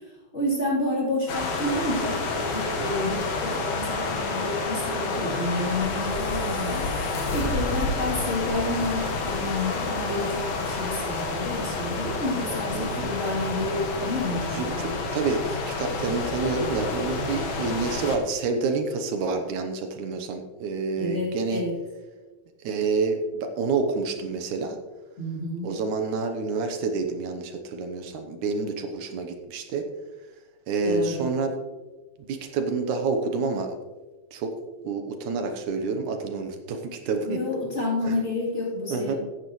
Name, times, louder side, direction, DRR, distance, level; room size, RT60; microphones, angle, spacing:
voice 1, 0.3-6.9 7.3-15.0 20.9-21.8 25.2-25.7 30.8-31.3 37.2-39.2, left 1 dB, 20° left, -6 dB, 3.0 m, -29 dB
sound 1, 1.3-18.2, left 3 dB, 60° left, 2.4 m, -29 dB
voice 2, 12.8-13.1 14.5-21.6 22.6-24.8 25.6-29.9 30.7-31.6 32.3-33.8 34.3-34.5 34.8-37.4 38.1-38.2 38.9-39.2, right 4 dB, 80° right, 5 dB, 2.3 m, -28 dB
15.0 x 9.2 x 3.1 m, 1.2 s
omnidirectional pair, 3.5 m